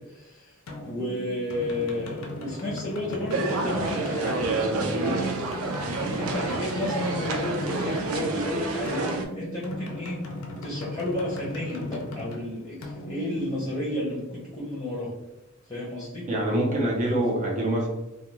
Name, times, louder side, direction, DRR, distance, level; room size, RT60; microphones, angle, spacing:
voice 1, 0.1-0.5 0.8-4.5 4.8-5.6 6.0-10.2 10.6-15.1 15.7-16.3, left 1 dB, 20° left, -6 dB, 0.7 m, -32 dB
sound 1, 0.7-14.2, left 1 dB, 75° left, 0.5 m, -38 dB
sound 2, 3.3-9.3, right 3 dB, 85° right, 0.4 m, -29 dB
voice 2, 16.3-17.9, right 1 dB, 35° right, -1 dB, 0.7 m, -25 dB
2.3 x 2.2 x 3.0 m, 0.98 s
head